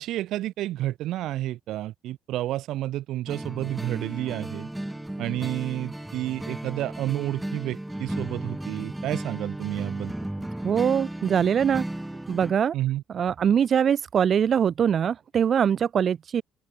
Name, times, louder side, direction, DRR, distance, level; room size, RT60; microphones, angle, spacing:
voice 1, 0.0-4.7 5.2-10.1 12.7-13.0, right 14 dB, 65° right, 1.2 m, -30 dB
sound 1, 3.3-12.5, right 1 dB, 5° right, 2.6 m, -35 dB
voice 2, 10.6-11.8 12.3-12.7 13.1-16.4, right 8 dB, 40° right, 0.4 m, -22 dB
open air
cardioid pair, 150°, 0 cm